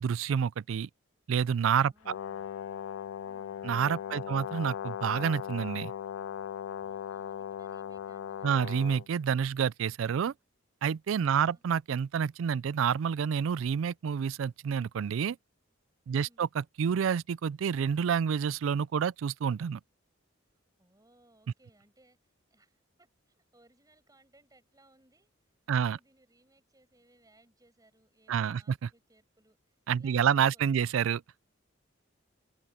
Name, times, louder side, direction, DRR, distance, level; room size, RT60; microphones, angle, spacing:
voice 1, 0.0-0.9 1.3-2.1 3.6-5.9 8.4-10.3 10.8-15.4 16.1-19.8 25.7-26.0 28.3-28.9 29.9-31.4, right 7 dB, 80° right, 0.4 m, -28 dB
voice 2, 1.8-2.5 3.2-3.6 4.0-4.4 6.8-8.5 11.3-11.6 16.1-16.4 20.8-25.3 25.7-30.9, right 2 dB, 20° right, 7.9 m, -65 dB
Brass instrument, 2.0-9.1, left 8 dB, 70° left, 0.3 m, -38 dB
head